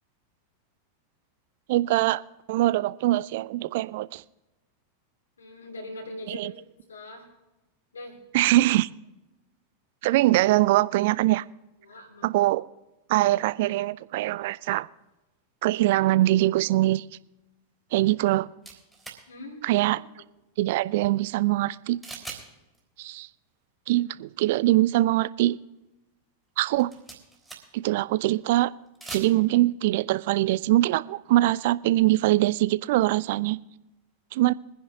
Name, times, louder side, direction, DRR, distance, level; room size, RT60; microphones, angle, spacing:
voice 1, 1.7-2.2 2.5-4.2 6.3-6.5 8.3-8.9 10.0-11.4 12.2-12.7 13.1-14.9 15.6-17.0 17.9-18.5 19.6-20.0 20.6-22.0 23.0-23.3 23.9-25.6 26.6-26.9 27.7-28.7 29.1-33.6 34.3-34.5, right 16 dB, 50° right, 19 dB, 0.4 m, -23 dB
voice 2, 5.4-6.5 6.9-7.3 7.9-8.2 11.8-12.3 19.3-19.6 20.2-20.3, left 1 dB, 70° left, 0 dB, 2.6 m, -41 dB
sound 1, 18.6-19.2 22.0-22.4 22.7-22.8 26.7-27.9 28.9-29.3, right 3 dB, 5° right, 3.5 m, -40 dB
23.5 x 10.0 x 2.8 m, 1.0 s
figure-of-eight pair, 90°, 0 cm